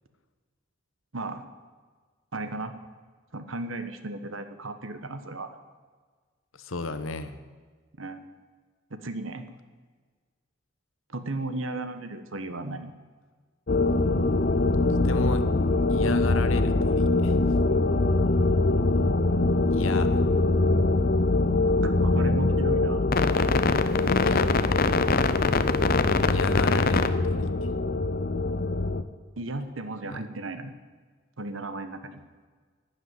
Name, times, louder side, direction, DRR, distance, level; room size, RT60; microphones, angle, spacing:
voice 1, 1.1-1.5 2.3-2.7 3.3-5.6 8.0-8.3 8.9-9.4 11.1-12.9 21.8-23.1 29.4-30.7 31.4-32.2, right 2 dB, 75° right, 9 dB, 1.2 m, -35 dB
voice 2, 6.6-7.4 15.0-15.4 15.9-17.4 19.7-20.2 24.1-24.6 26.3-27.7 30.1-30.2, left 3 dB, 80° left, 11 dB, 1.2 m, -34 dB
sound 1, 13.7-29.0, left 2 dB, 45° left, 0.7 m, -23 dB
12.0 x 11.0 x 9.5 m, 1.5 s
head